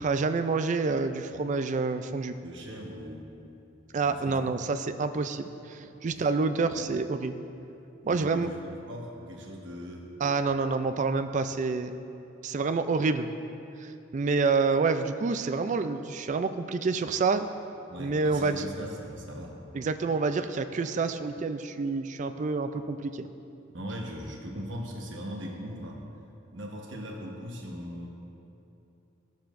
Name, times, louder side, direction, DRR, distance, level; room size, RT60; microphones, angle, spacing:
voice 1, 0.0-2.4 3.9-7.4 8.0-8.5 10.2-11.9 12.4-13.3 13.8-17.5 18.0-18.7 19.7-23.3, right 4 dB, 40° right, 9 dB, 0.3 m, -28 dB
voice 2, 2.4-3.3 4.0-4.6 5.9-6.2 6.7-7.0 8.1-10.1 17.9-19.6 23.7-26.0 26.5-28.1, equal, 65° right, -1 dB, 1.2 m, -40 dB
14.0 x 7.1 x 2.6 m, 2.8 s
head